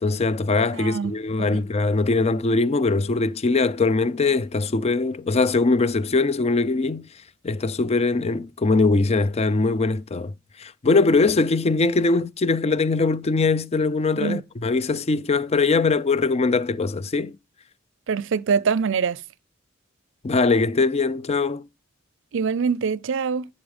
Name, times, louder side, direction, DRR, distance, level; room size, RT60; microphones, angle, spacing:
voice 1, 0.0-7.1 7.4-10.3 10.6-17.4 20.2-21.7, left 3 dB, 30° left, 0.5 m, -21 dB
voice 2, 0.7-1.1 1.5-1.7 14.2-14.4 18.1-19.2 22.3-23.5, right 6 dB, 65° right, 0.5 m, -24 dB
10.5 x 4.0 x 5.2 m
head